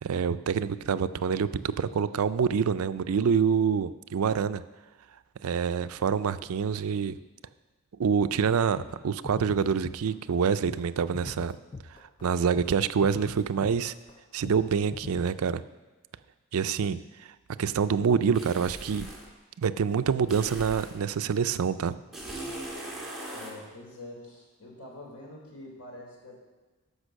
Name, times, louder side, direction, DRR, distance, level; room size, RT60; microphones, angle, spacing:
voice 1, 0.0-4.6 5.4-7.2 8.0-11.6 12.2-13.9 14.3-15.6 16.5-17.3 17.6-19.1 19.6-22.0, right 6 dB, 75° right, 13 dB, 0.4 m, -26 dB
sound 1, 8.4-8.5 8.8-9.0 9.2-10.4 10.7-10.9 11.1-12.3 12.5-12.8 13.0-14.2 14.4-14.7 14.9-15.5, left 3 dB, 20° left, 0.3 m, -42 dB
sound 2, 18.3-19.3 20.3-21.0 22.1-23.6, right 1 dB, ahead, 1.8 m, -39 dB
voice 2, 23.3-26.4, left 1 dB, 85° left, -2 dB, 3.4 m, -45 dB
13.0 x 5.2 x 6.3 m, 1.2 s
head